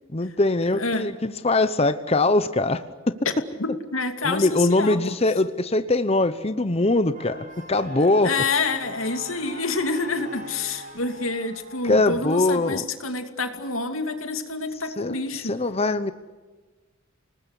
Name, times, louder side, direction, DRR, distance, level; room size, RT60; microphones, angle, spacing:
voice 1, 0.1-3.1 4.2-8.3 11.8-12.8 15.0-15.1 15.4-16.1, left 2 dB, 30° left, 11 dB, 0.9 m, -22 dB
voice 2, 0.8-1.1 3.6-5.1 8.0-15.6, left 3 dB, 90° left, 7 dB, 2.7 m, -28 dB
sound 1, 7.1-12.2, right 1 dB, 40° right, 7.4 m, -41 dB
30.0 x 20.0 x 8.3 m, 1.3 s
head